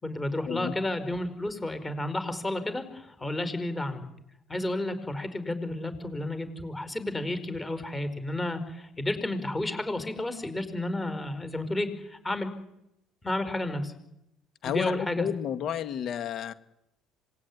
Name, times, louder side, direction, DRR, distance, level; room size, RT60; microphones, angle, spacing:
voice 1, 0.0-4.0 4.5-12.5 13.2-13.9 14.6-15.3, left 1 dB, 15° left, 11 dB, 5.0 m, -31 dB
voice 2, 14.6-16.5, left 9 dB, 55° left, 10 dB, 2.1 m, -31 dB
26.5 x 20.0 x 9.8 m, 0.84 s
cardioid pair, 105°, 0 cm